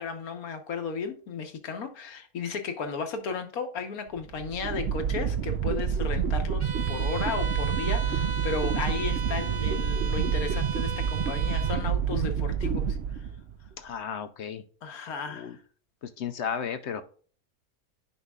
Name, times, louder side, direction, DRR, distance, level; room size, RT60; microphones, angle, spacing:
voice 1, 0.0-13.3 14.8-15.6, left 5 dB, 80° left, 1.5 m, -34 dB
sound 1, 4.2-13.7, right 7 dB, 65° right, 0.7 m, -28 dB
Bowed string instrument, 6.6-11.9, right 5 dB, 25° right, 0.8 m, -37 dB
voice 2, 13.8-14.6 15.3-15.6 16.0-17.0, left 7 dB, 60° left, 0.8 m, -34 dB
9.7 x 5.3 x 2.3 m
omnidirectional pair, 1.5 m